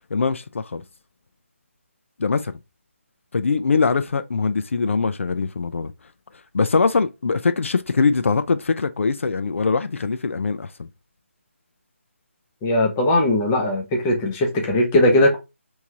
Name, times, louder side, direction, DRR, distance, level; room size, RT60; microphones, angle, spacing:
voice 1, 0.1-0.8 2.2-2.5 3.3-5.9 6.5-10.9, left 4 dB, 70° left, 0.4 m, -22 dB
voice 2, 12.6-15.4, left 1 dB, 15° left, 0.6 m, -19 dB
3.1 x 2.7 x 3.5 m
figure-of-eight pair, 165°, 7 cm